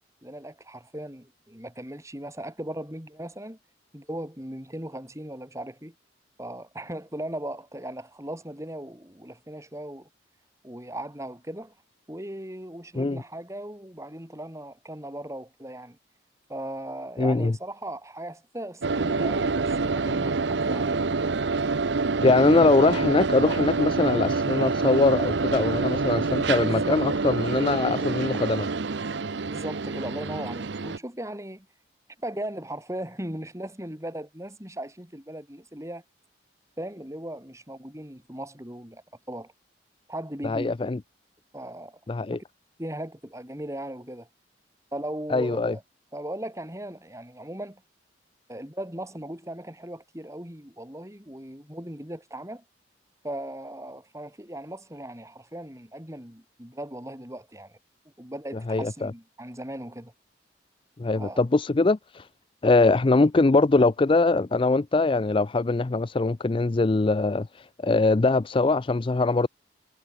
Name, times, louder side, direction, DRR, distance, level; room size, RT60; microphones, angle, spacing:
voice 1, 0.2-3.6 3.9-5.9 6.4-10.1 10.6-11.7 12.1-16.0 16.5-20.4 20.7-21.2 26.6-27.0 29.4-31.7 32.2-36.0 36.8-39.5 40.1-40.7 41.5-42.0 42.8-44.3 44.9-45.8 46.1-47.8 48.5-52.6 53.2-57.8 58.2-60.1 61.1-61.4, right 1 dB, 15° right, 5.9 m, -38 dB
voice 2, 17.2-17.5 22.2-28.7 40.4-41.0 42.1-42.4 45.3-45.8 58.7-59.1 61.0-62.3 62.6-69.5, left 3 dB, 30° left, 0.4 m, -22 dB
sound 1, 18.8-31.0, right 4 dB, 70° right, 0.8 m, -27 dB
head